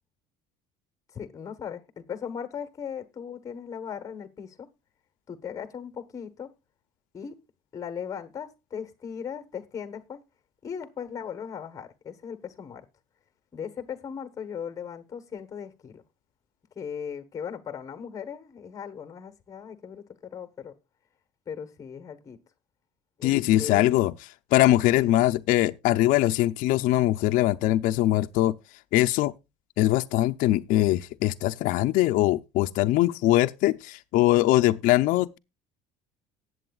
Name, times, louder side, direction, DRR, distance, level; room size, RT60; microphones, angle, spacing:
voice 1, 1.1-4.7 5.3-6.5 7.1-7.4 7.7-10.2 10.6-12.8 13.5-16.0 16.7-20.7 21.5-22.4 23.2-24.0 24.9-25.2, left 7 dB, 20° left, 1.1 m, -38 dB
voice 2, 23.2-24.1 24.5-28.5 28.9-29.3 29.8-35.4, left 15 dB, 55° left, 0.5 m, -22 dB
19.0 x 7.9 x 2.3 m
cardioid pair, 165°, 16 cm